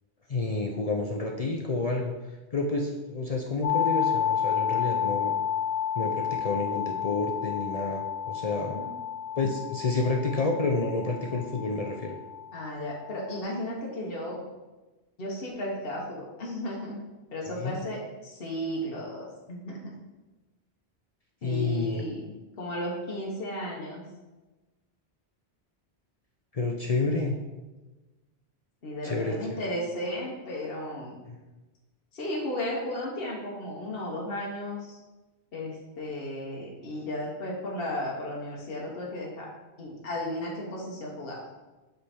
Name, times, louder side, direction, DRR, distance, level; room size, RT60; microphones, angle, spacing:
voice 1, 0.3-2.1 2.5-5.3 6.0-8.8 9.4-12.2 17.6-17.8 21.4-22.0 26.5-27.3 29.0-29.6, left 3 dB, 45° left, 1 dB, 0.6 m, -29 dB
sound 1, 3.6-13.4, left 8 dB, 85° left, 0.9 m, -31 dB
voice 2, 12.5-14.5 15.2-17.0 17.3-19.9 21.4-22.2 22.6-24.0 28.8-31.2 32.1-35.0 35.5-39.5 39.8-41.6, left 1 dB, 60° left, -3 dB, 1.3 m, -34 dB
7.9 x 3.4 x 4.3 m, 1.1 s
omnidirectional pair, 1.1 m